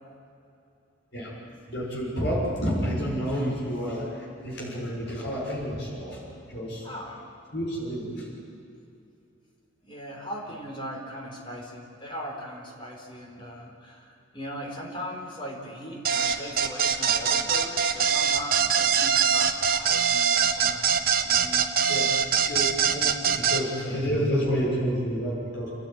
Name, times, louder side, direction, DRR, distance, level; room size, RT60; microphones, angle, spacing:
voice 1, 1.7-6.2 6.5-6.9 7.5-8.3 21.9-25.7, equal, 60° left, -4 dB, 6.3 m, -29 dB
voice 2, 6.8-7.3 9.8-21.7, equal, 25° left, -1 dB, 4.2 m, -39 dB
sound 1, 16.0-23.6, right 7 dB, 45° right, 1.3 m, -23 dB
29.0 x 14.0 x 9.4 m, 2.7 s
head